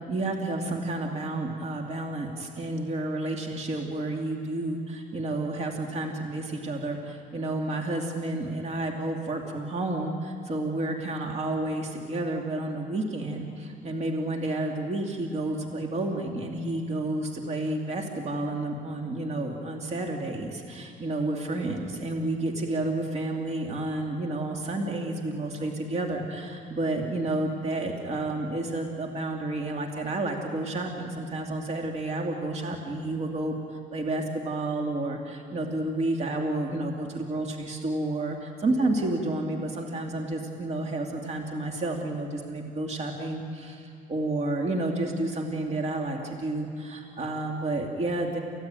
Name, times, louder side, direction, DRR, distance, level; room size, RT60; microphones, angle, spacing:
voice 1, 0.1-48.4, right 2 dB, 40° right, 2 dB, 2.6 m, -30 dB
29.0 x 16.0 x 9.1 m, 2.3 s
cardioid pair, 110°, 17 cm